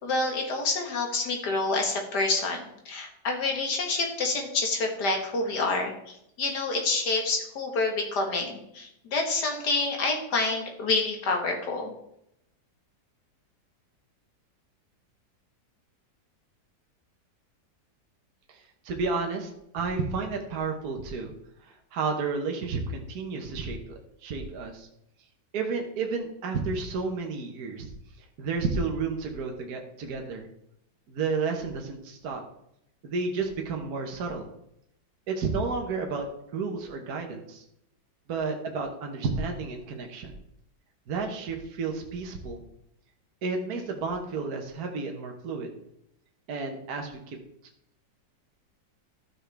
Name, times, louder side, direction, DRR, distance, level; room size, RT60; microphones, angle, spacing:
voice 1, 0.0-12.0, left 3 dB, 65° left, 2 dB, 2.1 m, -28 dB
voice 2, 18.5-21.3 21.6-24.9 25.5-27.9 28.4-30.5 31.1-32.4 33.0-34.5 35.3-36.3 36.5-37.6 38.3-40.3 41.1-42.6 43.4-45.8 46.5-47.4, right 4 dB, 60° right, 2 dB, 1.6 m, -31 dB
12.5 x 6.3 x 3.4 m, 0.77 s
omnidirectional pair, 1.9 m